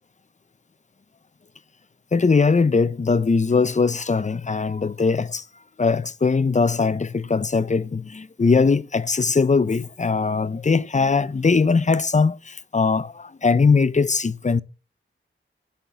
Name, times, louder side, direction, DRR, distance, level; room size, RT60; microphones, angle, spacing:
voice 1, 2.1-5.4 5.8-14.6, left 4 dB, 35° left, 0.7 m, -20 dB
9.9 x 5.9 x 8.1 m
wide cardioid pair, 80°, 21 cm